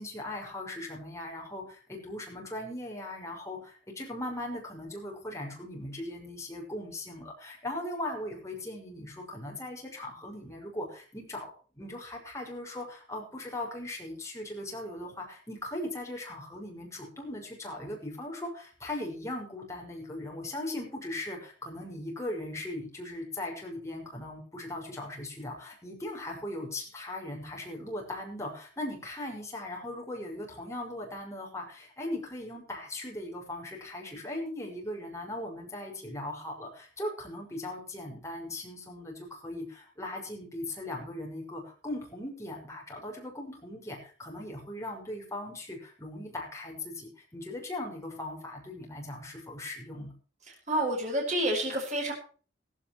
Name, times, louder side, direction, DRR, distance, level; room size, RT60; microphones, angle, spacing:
voice 1, 0.0-50.1, left 1 dB, 15° left, 0 dB, 5.8 m, -39 dB
voice 2, 50.7-52.1, right 1 dB, 40° right, 0 dB, 5.4 m, -28 dB
16.5 x 16.0 x 3.1 m, 0.40 s
head